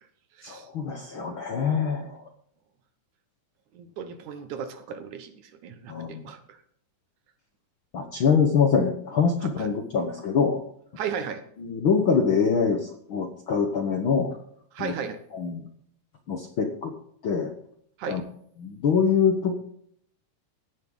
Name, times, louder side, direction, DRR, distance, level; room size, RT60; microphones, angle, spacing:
voice 1, 0.4-2.2 5.9-6.3 7.9-10.6 11.6-14.4 14.8-14.9 15.3-15.6 16.3-16.9 17.2-17.5 18.1-18.2 18.6-19.6, left 6 dB, 60° left, 4 dB, 1.4 m, -24 dB
voice 2, 3.7-6.6 9.4-9.7 11.0-11.4 14.7-15.2 18.0-18.2, right 7 dB, 70° right, 9 dB, 2.5 m, -35 dB
16.0 x 11.0 x 3.9 m, 0.66 s
omnidirectional pair, 3.7 m